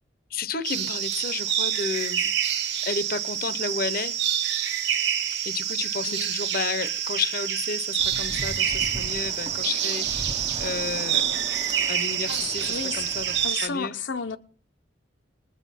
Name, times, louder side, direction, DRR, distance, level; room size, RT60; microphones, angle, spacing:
voice 1, 0.3-2.3 2.8-4.2 5.4-11.2 11.9-13.9, left 5 dB, 50° left, 0.8 m, -32 dB
sound 1, 0.7-13.7, right 9 dB, 65° right, 1.0 m, -27 dB
sound 2, 8.0-13.5, right 1 dB, 25° right, 0.8 m, -39 dB
voice 2, 12.3-13.0 13.4-14.4, left 5 dB, 85° left, 0.8 m, -32 dB
20.5 x 7.4 x 5.8 m
head